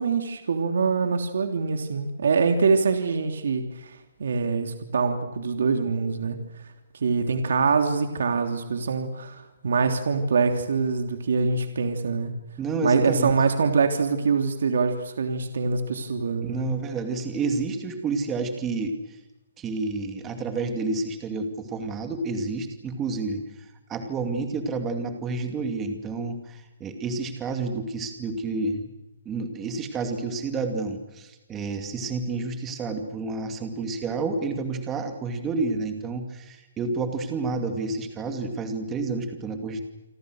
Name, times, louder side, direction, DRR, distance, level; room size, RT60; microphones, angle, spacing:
voice 1, 0.0-6.4 7.0-12.3 12.8-16.7, right 5 dB, 65° right, 6 dB, 3.2 m, -24 dB
voice 2, 12.6-13.3 16.4-18.9 19.6-23.4 23.9-28.9 29.2-39.8, right 3 dB, 10° right, 6 dB, 2.5 m, -29 dB
29.0 x 25.0 x 6.5 m, 1.0 s
hypercardioid pair, 175°, 0 cm